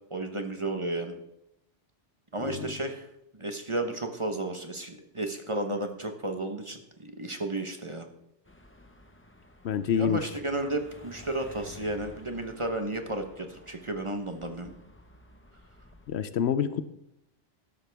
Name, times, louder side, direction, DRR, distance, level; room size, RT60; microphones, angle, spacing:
voice 1, 0.1-1.2 2.3-3.1 3.3-8.1 9.9-14.7, right 2 dB, 30° right, 5 dB, 1.0 m, -33 dB
sound 1, 8.5-16.2, left 2 dB, 10° left, 0.9 m, -52 dB
voice 2, 9.6-10.2 16.1-16.8, left 8 dB, 70° left, 13 dB, 0.9 m, -27 dB
12.5 x 12.0 x 3.5 m, 0.84 s
omnidirectional pair, 1.2 m